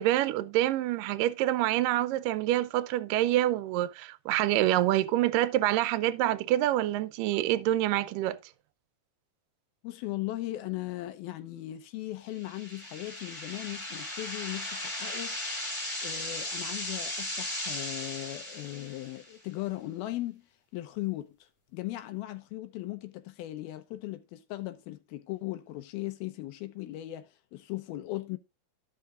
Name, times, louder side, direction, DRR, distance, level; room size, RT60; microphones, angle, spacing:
voice 1, 0.0-8.4, right 14 dB, 80° right, 2.1 m, -26 dB
voice 2, 9.8-15.4 16.0-20.5 20.7-21.4 21.7-28.4, left 16 dB, 85° left, 2.8 m, -38 dB
sound 1, 12.3-19.3, left 1 dB, 5° left, 2.6 m, -37 dB
15.0 x 5.7 x 2.5 m
omnidirectional pair, 4.2 m